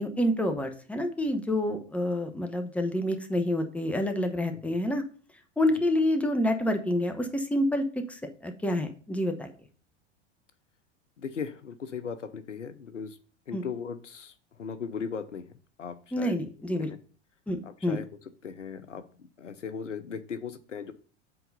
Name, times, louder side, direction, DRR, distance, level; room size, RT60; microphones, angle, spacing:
voice 1, 0.0-5.0 5.6-9.5 13.5-13.6 16.1-16.9 17.5-18.0, left 1 dB, 5° left, 6 dB, 1.0 m, -28 dB
voice 2, 11.2-13.1 13.5-14.3 14.6-15.5 15.8-16.3 17.6-18.1 18.4-19.0 19.4-20.9, left 6 dB, 85° left, 13 dB, 0.7 m, -37 dB
8.0 x 3.9 x 5.4 m, 0.41 s
figure-of-eight pair, 85°, 36 cm